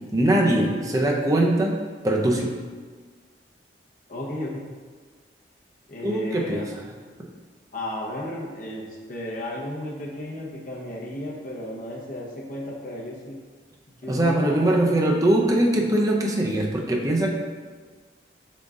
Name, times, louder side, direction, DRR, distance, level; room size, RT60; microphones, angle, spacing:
voice 1, 0.1-2.5 6.0-6.7 7.2-7.3 14.1-17.3, right 1 dB, 20° right, -1 dB, 0.4 m, -22 dB
voice 2, 4.1-4.7 5.9-6.7 7.7-13.4 14.0-15.0, left 1 dB, 45° left, -4 dB, 0.8 m, -34 dB
3.8 x 3.6 x 3.6 m, 1.5 s
head